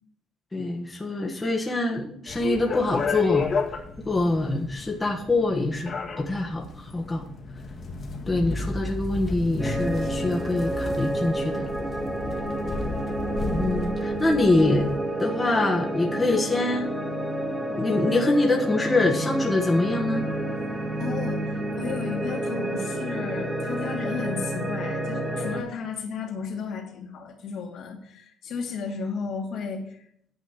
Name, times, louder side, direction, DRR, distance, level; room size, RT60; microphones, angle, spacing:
voice 1, 0.5-3.5 4.0-5.9 6.2-7.3 8.3-11.7 13.6-14.9 15.2-16.9 17.6-20.3, left 2 dB, 15° left, 0 dB, 1.3 m, -24 dB
sound 1, 2.3-15.0, left 4 dB, 35° left, 1.7 m, -33 dB
sound 2, 9.6-25.6, right 1 dB, 5° right, 1.6 m, -29 dB
voice 2, 21.0-30.1, left 5 dB, 65° left, 1 dB, 2.4 m, -33 dB
9.6 x 5.2 x 7.9 m, 0.68 s
cardioid pair, 140°, 0 cm